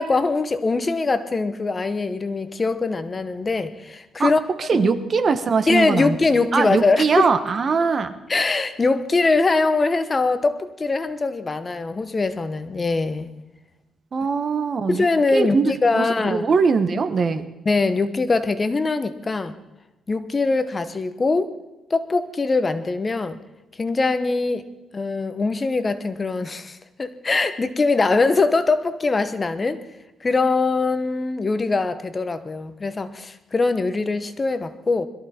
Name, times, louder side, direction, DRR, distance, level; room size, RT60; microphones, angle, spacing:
voice 1, 0.0-4.4 4.7-4.9 5.7-7.3 8.3-13.3 14.9-16.5 17.7-19.5 20.1-21.5 21.9-23.4 23.8-24.6 24.9-29.8 30.2-35.1, left 3 dB, 25° left, 11 dB, 0.9 m, -22 dB
voice 2, 4.6-6.2 6.5-8.1 14.1-15.1 15.3-17.5, right 5 dB, 40° right, 11 dB, 1.1 m, -21 dB
22.0 x 14.0 x 4.3 m, 1.0 s
cardioid pair, 135°, 0 cm